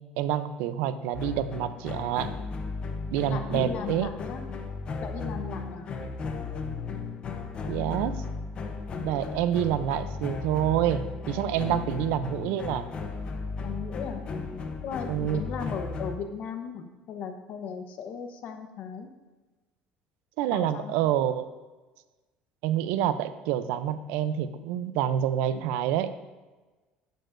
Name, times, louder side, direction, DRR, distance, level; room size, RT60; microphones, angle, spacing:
voice 1, 0.2-2.3 3.1-4.1 6.0-6.1 7.7-8.1 9.0-12.9 15.1-15.4 20.4-21.5 22.6-26.2, right 11 dB, 90° right, 12 dB, 0.6 m, -27 dB
sound 1, 1.1-16.2, left 4 dB, 35° left, 0.7 m, -35 dB
voice 2, 3.3-4.4 5.0-5.9 9.3-9.4 11.4-11.9 13.6-14.2 14.8-19.1 20.5-21.1, left 6 dB, 50° left, 6 dB, 1.0 m, -37 dB
13.0 x 8.0 x 2.6 m, 1.2 s
cardioid pair, 140°, 3 cm